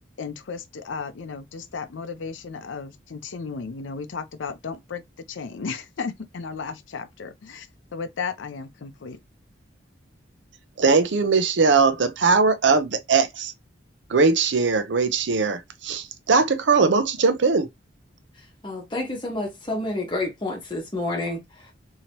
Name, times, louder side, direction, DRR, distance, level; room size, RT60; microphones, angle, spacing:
voice 1, 0.2-9.2, left 5 dB, 80° left, 0.5 m, -34 dB
voice 2, 10.8-13.5 14.1-17.7, right 4 dB, 70° right, 0.6 m, -20 dB
voice 3, 18.6-21.7, left 2 dB, 25° left, 1.1 m, -29 dB
3.0 x 2.8 x 2.8 m
head